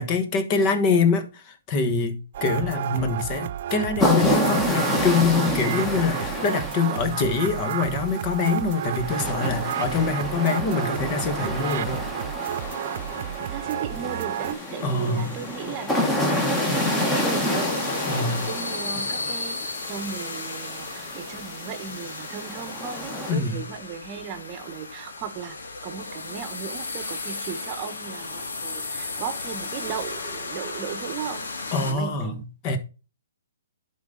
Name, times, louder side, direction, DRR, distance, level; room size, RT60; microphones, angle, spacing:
voice 1, 0.0-12.0 14.8-15.4 18.0-18.4 23.3-23.6 31.7-32.8, left 4 dB, 30° left, 1.4 m, -24 dB
sound 1, 2.3-14.5, right 11 dB, 50° right, 0.4 m, -32 dB
sound 2, 4.0-23.3, left 1 dB, 10° left, 1.6 m, -29 dB
sound 3, 12.4-31.9, left 3 dB, 75° left, 2.3 m, -35 dB
voice 2, 13.5-32.5, right 8 dB, 30° right, 1.1 m, -36 dB
11.0 x 4.0 x 3.9 m
hypercardioid pair, 140°, 0 cm